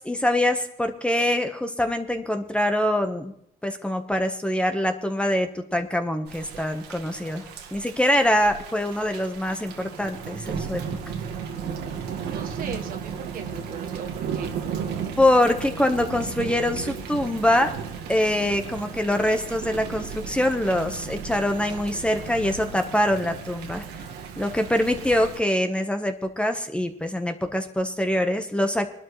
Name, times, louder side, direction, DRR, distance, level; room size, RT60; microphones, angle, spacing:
voice 1, 0.0-3.3 3.6-7.4 7.7-10.8 15.2-17.7 18.1-23.8 24.4-28.9, left 1 dB, 5° left, 6 dB, 1.2 m, -24 dB
Thunder / Rain, 6.3-25.4, right 6 dB, 85° right, 1.8 m, -35 dB
voice 2, 12.2-14.5, right 6 dB, 55° right, 4 dB, 1.5 m, -38 dB
21.5 x 12.0 x 3.2 m, 0.70 s
cardioid pair, 110°, 17 cm